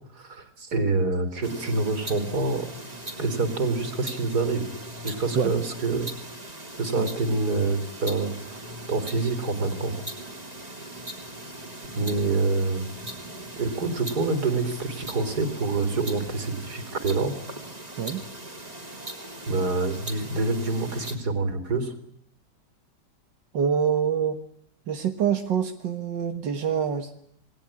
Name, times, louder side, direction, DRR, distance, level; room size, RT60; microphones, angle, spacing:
voice 1, 0.1-2.7 3.2-4.7 5.0-6.1 6.8-8.6 8.9-10.0 12.0-12.9 13.6-17.3 19.5-21.9, right 3 dB, 60° right, 10 dB, 4.1 m, -26 dB
sound 1, 1.4-21.2, right 1 dB, 20° right, 3.6 m, -40 dB
voice 2, 23.5-24.4 24.9-27.1, right 7 dB, 85° right, 6 dB, 2.2 m, -25 dB
28.0 x 21.0 x 8.7 m, 0.69 s
omnidirectional pair, 1.9 m